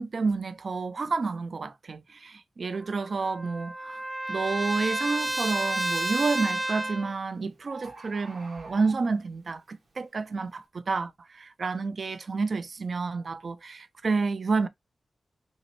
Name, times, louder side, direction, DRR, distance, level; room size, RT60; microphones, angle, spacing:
voice 1, 0.0-4.0 4.3-14.7, right 4 dB, 50° right, 0.3 m, -30 dB
Trumpet, 2.7-7.1, right 1 dB, 25° right, 0.7 m, -31 dB
Bird, 4.4-4.6 5.2-5.6 6.6-6.7 7.0-7.1 7.3-7.4 7.6-9.4 9.9-10.0, right 3 dB, 75° right, 1.9 m, -46 dB
5.4 x 2.1 x 2.9 m
wide cardioid pair, 160°, 0 cm